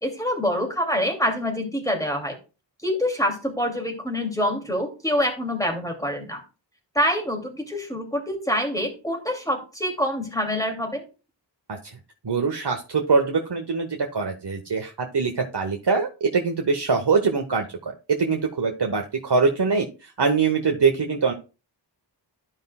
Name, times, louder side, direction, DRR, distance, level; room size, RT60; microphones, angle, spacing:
voice 1, 0.0-2.4 2.8-6.4 6.9-11.0, equal, 10° left, 2 dB, 2.6 m, -26 dB
voice 2, 12.2-21.3, right 4 dB, 65° right, 3 dB, 1.1 m, -23 dB
13.0 x 5.5 x 2.3 m, 0.32 s
wide cardioid pair, 45°, 45 cm